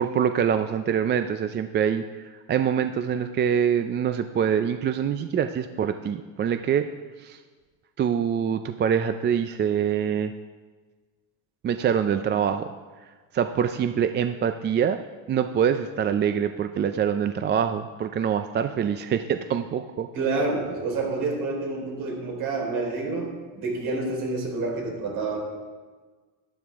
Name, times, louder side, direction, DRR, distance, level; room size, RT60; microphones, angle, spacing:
voice 1, 0.0-2.0 2.3-6.9 7.2-7.4 8.0-10.3 11.6-12.7 13.3-15.0 15.3-20.1, right 8 dB, 30° right, 9 dB, 0.4 m, -25 dB
voice 2, 20.1-25.4, right 3 dB, 60° right, -1 dB, 4.1 m, -28 dB
12.5 x 11.5 x 3.5 m, 1.4 s
cardioid pair, 120°, 37 cm